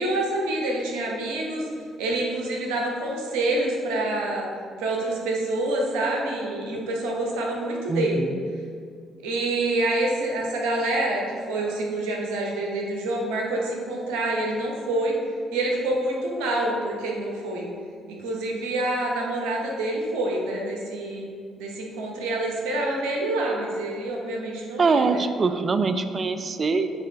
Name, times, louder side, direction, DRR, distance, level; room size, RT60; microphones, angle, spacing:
voice 1, 0.0-1.6 2.0-4.5 4.8-8.3 9.2-15.2 15.5-17.7 18.1-21.3 21.6-25.2, right 2 dB, 80° right, -1 dB, 1.1 m, -27 dB
voice 2, 7.9-8.4 24.8-27.0, right 4 dB, 45° right, 9 dB, 0.5 m, -23 dB
8.1 x 3.4 x 4.1 m, 2.2 s
hypercardioid pair, 55°, 0 cm